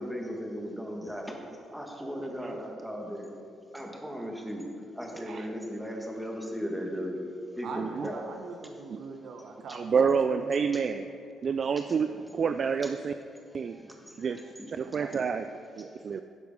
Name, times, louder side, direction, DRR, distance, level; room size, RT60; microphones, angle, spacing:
voice 1, 0.0-1.4 1.7-3.3 3.7-4.6 5.0-7.2 7.6-8.3 11.9-12.0 13.8-13.9 14.2-14.7, equal, 5° right, 1 dB, 1.5 m, -36 dB
voice 2, 5.1-5.5 7.7-8.1 8.9-9.0 9.7-11.1 11.4-13.1 13.5-13.8 14.2-14.4 14.7-16.2, right 6 dB, 50° right, 9 dB, 0.3 m, -29 dB
voice 3, 7.6-10.5 14.9-15.1, right 4 dB, 65° right, 4 dB, 0.9 m, -42 dB
12.0 x 4.7 x 5.3 m, 2.4 s
cardioid pair, 90°, 0 cm